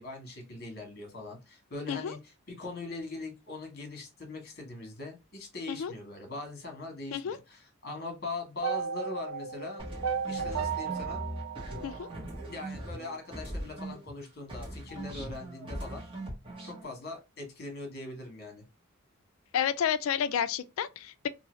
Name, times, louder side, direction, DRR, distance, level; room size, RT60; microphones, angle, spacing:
voice 1, 0.0-9.8 10.3-11.2 12.5-16.0 16.6-18.6, left 3 dB, 50° left, 1.2 m, -41 dB
sound 1, 8.6-12.8, right 6 dB, 65° right, 0.3 m, -35 dB
sound 2, 9.8-14.2 14.5-16.8, right 1 dB, 25° right, 1.4 m, -40 dB
voice 2, 19.5-21.3, left 8 dB, 70° left, 0.3 m, -30 dB
2.7 x 2.7 x 3.0 m
head